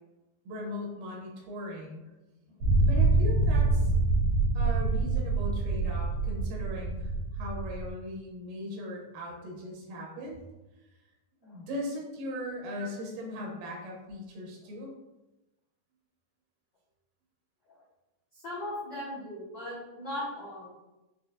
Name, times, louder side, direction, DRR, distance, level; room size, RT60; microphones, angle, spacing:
voice 1, 0.5-2.0 2.5-3.9 4.5-10.4 11.4-14.9, equal, 90° right, -2 dB, 2.5 m, -39 dB
sound 1, 2.6-7.9, right 2 dB, 70° right, 2.8 m, -26 dB
voice 2, 18.3-20.7, left 1 dB, 80° left, -10 dB, 1.0 m, -38 dB
6.3 x 2.2 x 2.6 m, 1.0 s
omnidirectional pair, 3.9 m